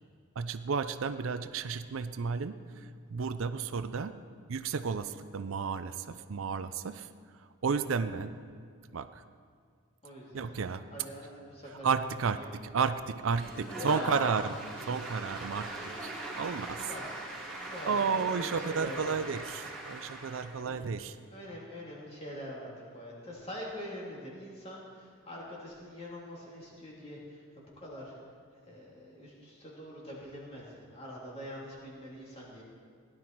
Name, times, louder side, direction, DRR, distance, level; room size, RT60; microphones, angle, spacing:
voice 1, 0.4-4.2 4.5-7.1 7.6-8.4 8.9-9.2 10.3-10.8 11.8-14.6 14.8-15.7 16.0-16.9 17.9-21.2, right 5 dB, 65° right, 11 dB, 0.5 m, -32 dB
voice 2, 10.0-10.5 10.9-12.0 12.3-12.6 13.7-14.2 16.6-17.2 17.6-19.1 20.4-28.2 28.6-32.6, equal, 30° left, -4 dB, 3.1 m, -44 dB
Applause / Crowd, 13.3-20.7, right 2 dB, 5° left, 3.1 m, -41 dB
17.0 x 11.0 x 4.5 m, 2.1 s
head